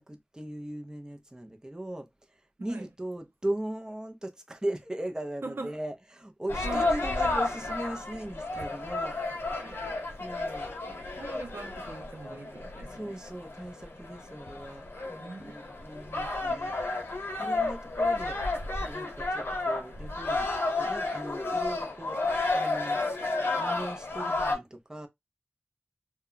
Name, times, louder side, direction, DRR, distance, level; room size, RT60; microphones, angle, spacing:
voice 1, 0.0-9.2 10.2-10.7 12.9-16.8 17.4-18.4 18.7-20.5 20.8-23.0 23.5-25.1, right 1 dB, 15° right, 0.5 m, -38 dB
voice 2, 5.4-5.8 6.6-6.9 9.6-9.9 10.9-13.2 15.2-15.6, right 3 dB, 70° right, 0.5 m, -42 dB
sound 1, 6.5-24.6, left 2 dB, 85° left, 0.8 m, -32 dB
2.1 x 2.1 x 3.7 m
wide cardioid pair, 50°, 4 cm